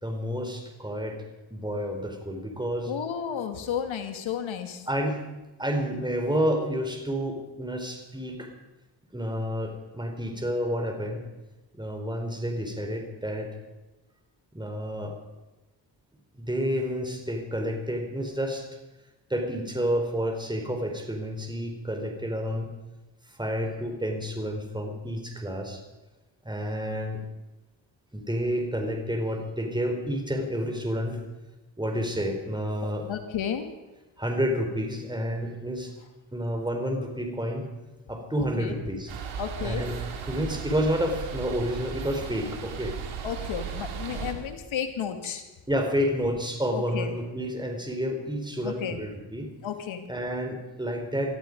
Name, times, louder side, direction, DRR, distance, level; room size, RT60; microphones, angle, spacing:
voice 1, 0.0-1.2 1.5-2.9 4.9-5.2 5.6-8.5 9.1-11.3 11.8-13.5 14.5-15.2 16.4-18.7 19.3-22.7 23.4-25.8 26.5-27.2 28.1-31.2 31.8-33.1 34.2-35.9 36.3-37.7 38.1-39.1 39.6-40.0 40.3-42.9 45.7-49.5 50.1-51.4, equal, 10° right, 4 dB, 3.8 m, -29 dB
voice 2, 2.8-4.8 33.1-33.7 38.4-38.8 39.4-39.9 43.2-45.4 46.7-47.1 48.6-49.0 49.6-50.1, left 8 dB, 80° left, 8 dB, 2.0 m, -32 dB
sound 1, 39.1-44.3, right 6 dB, 90° right, 2.2 m, -36 dB
20.5 x 13.5 x 5.2 m, 1.1 s
supercardioid pair, 55°, 47 cm